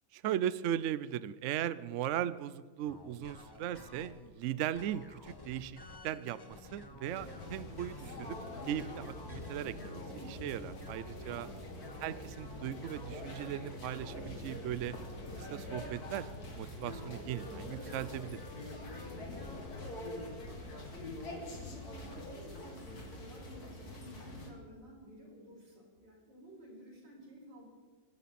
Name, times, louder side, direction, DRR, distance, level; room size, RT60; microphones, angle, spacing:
voice 1, 0.1-8.4 8.7-11.5 12.0-15.0 15.4-16.3 16.6-18.4, right 11 dB, 70° right, 16 dB, 0.7 m, -38 dB
sound 1, 2.9-4.3 4.7-8.3 8.8-19.7, left 2 dB, 20° left, 0.7 m, -52 dB
sound 2, 7.0-24.5, left 1 dB, 60° left, 2.8 m, -45 dB
voice 2, 11.2-11.7 19.1-19.7 20.9-27.7, right 1 dB, 85° right, -3 dB, 6.1 m, -53 dB
25.0 x 12.5 x 4.2 m, 1.5 s
omnidirectional pair, 1.9 m